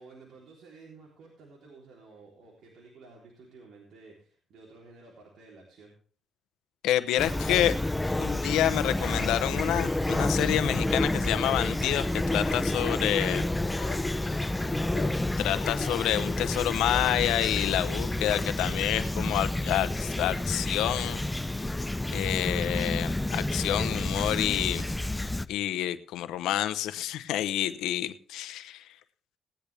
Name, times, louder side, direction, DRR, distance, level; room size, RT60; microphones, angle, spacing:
voice 1, 0.0-5.9, right 3 dB, 65° right, -2 dB, 3.5 m, -52 dB
voice 2, 6.8-7.8 8.2-13.5 15.4-21.2 22.1-24.8 25.5-28.9, left 12 dB, 90° left, 12 dB, 0.8 m, -28 dB
Fowl / Chirp tweet, 7.2-25.5, left 1 dB, 10° left, 0.6 m, -29 dB
Zipper (clothing), 11.6-18.9 19.3-19.4, left 8 dB, 60° left, 1.1 m, -45 dB
18.0 x 10.5 x 3.4 m, 0.44 s
cardioid pair, 90°, 0 cm